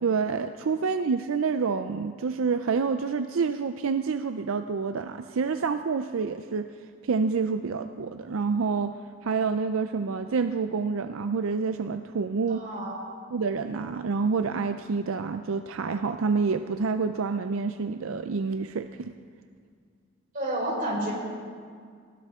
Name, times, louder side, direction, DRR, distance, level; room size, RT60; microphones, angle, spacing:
voice 1, 0.0-6.7 7.0-8.9 9.2-12.7 13.3-19.1, right 5 dB, 80° right, 9 dB, 0.5 m, -28 dB
voice 2, 12.5-13.0 20.3-21.1, right 1 dB, 40° right, -3 dB, 4.5 m, -30 dB
19.0 x 17.0 x 3.6 m, 2.1 s
head